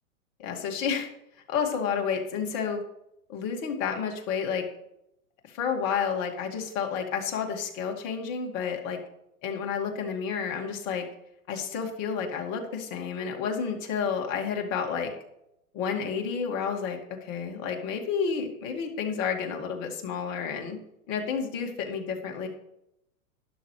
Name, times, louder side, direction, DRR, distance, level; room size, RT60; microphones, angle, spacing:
voice 1, 0.4-1.1 1.5-2.8 3.3-4.6 5.5-9.0 9.4-11.1 11.5-15.1 15.7-20.8 21.1-22.5, left 6 dB, 40° left, 2 dB, 2.3 m, -30 dB
12.5 x 10.5 x 3.3 m, 0.82 s
hypercardioid pair, 125°, 44 cm